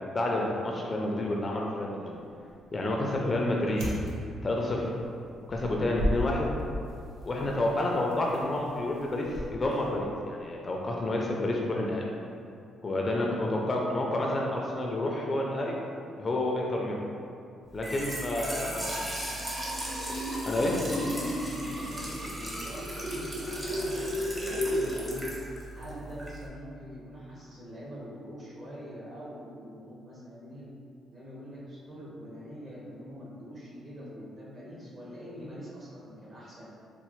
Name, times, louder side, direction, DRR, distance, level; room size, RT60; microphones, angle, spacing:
voice 1, 0.0-2.2 2.7-3.9 4.4-4.9 5.5-6.5 7.2-12.0 12.8-15.8 16.2-17.0 17.7-19.0 20.5-20.8, left 1 dB, 30° left, -1 dB, 0.4 m, -29 dB
sound 1, 2.1-10.2, left 1 dB, 85° right, 0.7 m, -38 dB
Trickle dribble / Fill (with liquid), 17.7-26.5, equal, 15° right, 0.9 m, -34 dB
voice 2, 18.3-18.8 20.7-25.3 25.7-30.7 31.1-36.7, equal, 35° right, -7 dB, 1.2 m, -44 dB
4.1 x 2.1 x 3.0 m, 2.5 s
cardioid pair, 90°, 0 cm